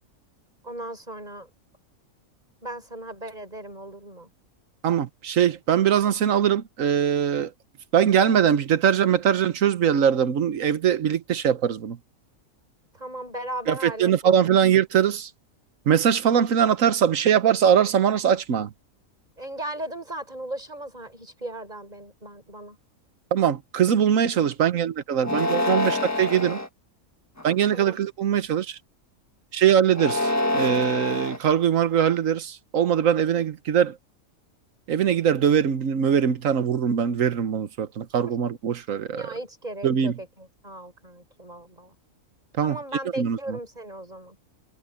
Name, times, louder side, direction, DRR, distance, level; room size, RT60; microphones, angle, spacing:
voice 1, 0.6-1.5 2.6-4.3 12.9-14.5 19.4-22.8 27.7-28.0 39.1-41.9 42.6-44.4, right 1 dB, 30° right, 5.7 m, -37 dB
voice 2, 4.8-7.5 7.9-12.0 13.7-15.3 15.9-18.7 23.3-26.6 27.4-28.8 29.5-34.0 34.9-39.3 39.8-40.2 42.6-42.8 43.2-43.6, right 8 dB, 75° right, 1.4 m, -22 dB
sound 1, 25.2-26.7 27.4-27.9 29.9-31.4, left 2 dB, 10° left, 1.5 m, -26 dB
omnidirectional pair, 1.4 m